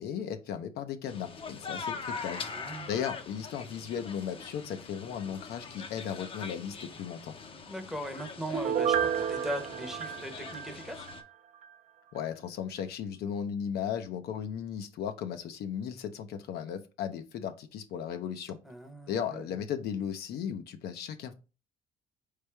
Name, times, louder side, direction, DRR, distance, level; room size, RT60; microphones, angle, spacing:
voice 1, 0.0-2.4 2.9-7.3 12.1-18.6 19.1-21.3, left 8 dB, 70° left, 7 dB, 0.6 m, -36 dB
sound 1, 1.1-11.2, left 5 dB, 30° left, 0.6 m, -43 dB
voice 2, 2.4-3.0 7.7-11.1 18.6-19.5, equal, ahead, 5 dB, 0.8 m, -39 dB
Piano, 8.5-11.2 11.6-11.7, right 8 dB, 45° right, 0.5 m, -31 dB
4.3 x 3.3 x 3.3 m, 0.31 s
cardioid pair, 110°, 17 cm